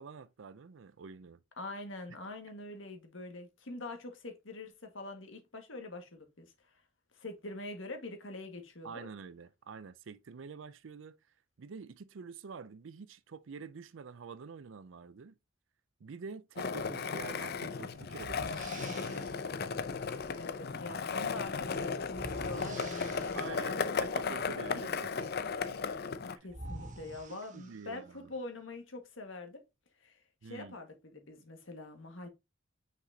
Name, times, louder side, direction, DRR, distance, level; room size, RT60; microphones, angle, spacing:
voice 1, 0.0-1.4 8.8-11.2 11.6-15.3 16.0-19.4 23.3-25.1 27.3-28.3 30.4-30.8, right 5 dB, 65° right, 0.4 m, -47 dB
voice 2, 1.6-6.5 7.1-9.1 16.7-16.9 20.4-24.0 25.5-25.8 26.4-29.6 30.0-32.3, left 2 dB, 65° left, 1.7 m, -44 dB
Skateboard, 16.6-26.4, left 5 dB, 50° left, 0.5 m, -35 dB
sound 1, 17.2-17.4 18.2-19.4 22.1-23.6 25.9-26.0 26.5-28.1, right 2 dB, 40° right, 1.1 m, -47 dB
6.0 x 5.8 x 2.8 m
head